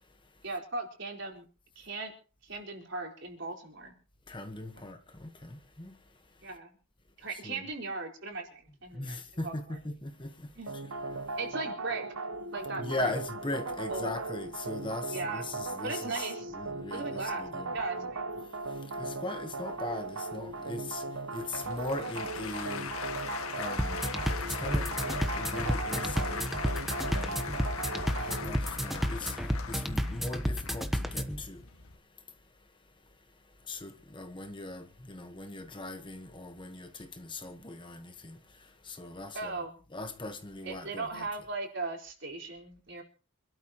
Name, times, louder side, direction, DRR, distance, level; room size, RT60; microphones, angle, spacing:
voice 1, 0.4-1.4 1.8-2.1 2.4-3.9 4.7-4.9 6.4-6.8 7.2-9.5 10.6-10.7 11.4-12.1 12.5-13.1 13.9-14.1 15.1-15.4 15.8-16.5 16.9-17.4 17.7-18.3 39.3-39.8 40.6-43.0, right 3 dB, 55° right, 4.4 m, -38 dB
voice 2, 4.3-5.9 7.4-7.6 9.0-10.3 12.8-17.7 18.0-18.1 19.0-21.0 21.3-22.9 23.6-24.0 24.6-24.9 25.4-26.5 27.1-27.4 28.2-29.3 29.7-31.6 33.7-38.3 38.9-39.5 39.9-41.3, left 2 dB, 20° left, 1.3 m, -39 dB
sound 1, 10.7-28.6, right 3 dB, 70° right, 1.0 m, -38 dB
Applause, 21.4-32.0, left 5 dB, 80° left, 2.0 m, -40 dB
sound 2, 23.8-31.4, equal, ahead, 1.1 m, -32 dB
27.0 x 12.5 x 3.1 m
head